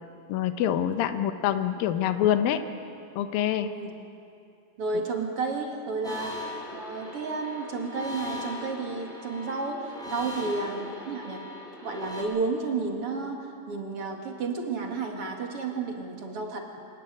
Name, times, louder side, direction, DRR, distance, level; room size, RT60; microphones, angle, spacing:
voice 1, 0.3-2.6 3.2-3.7 4.9-5.0 6.1-6.2, left 10 dB, 90° left, 9 dB, 2.7 m, -26 dB
voice 2, 3.6-3.9 4.8-9.8 10.1-11.4 11.8-13.4 13.7-16.7, right 4 dB, 45° right, 2 dB, 2.7 m, -32 dB
sound 1, 6.0-12.2, left 2 dB, ahead, 4.3 m, -39 dB
25.0 x 14.5 x 9.7 m, 2.5 s
omnidirectional pair, 4.0 m